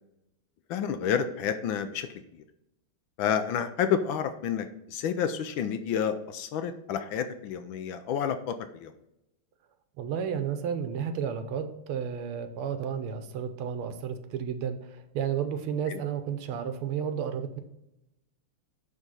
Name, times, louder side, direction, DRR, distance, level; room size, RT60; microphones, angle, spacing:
voice 1, 0.7-2.1 3.2-8.5 8.8-8.9 15.9-16.0, left 8 dB, 75° left, 9 dB, 1.3 m, -29 dB
voice 2, 10.0-17.6, right 8 dB, 80° right, 8 dB, 1.7 m, -32 dB
10.5 x 3.6 x 4.0 m, 0.87 s
omnidirectional pair, 2.4 m